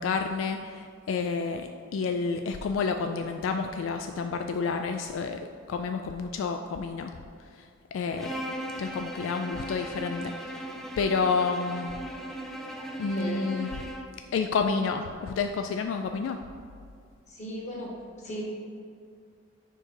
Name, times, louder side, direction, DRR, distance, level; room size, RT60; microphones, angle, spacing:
voice 1, 0.0-7.1 7.9-10.7 11.0-11.9 13.0-13.8 14.3-16.4, left 5 dB, 80° left, 6 dB, 0.3 m, -30 dB
Bowed string instrument, 8.2-14.2, right 1 dB, ahead, 0.4 m, -38 dB
voice 2, 13.1-13.5 17.3-18.4, equal, 40° left, -3 dB, 1.4 m, -37 dB
4.9 x 4.5 x 4.7 m, 2.3 s
head